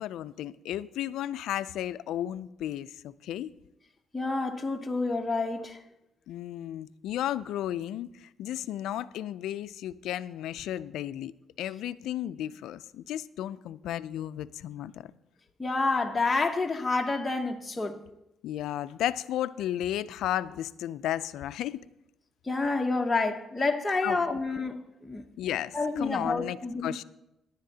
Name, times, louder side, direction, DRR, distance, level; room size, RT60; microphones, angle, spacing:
voice 1, 0.0-3.5 6.3-11.3 11.6-15.1 18.4-21.8 24.0-24.2 25.4-26.6 26.8-27.0, left 12 dB, 85° left, 0.4 m, -33 dB
voice 2, 4.1-5.8 15.6-18.0 22.5-25.2 25.7-26.9, left 3 dB, 20° left, 0.9 m, -29 dB
18.0 x 10.5 x 2.8 m
cardioid pair, 90°, 0 cm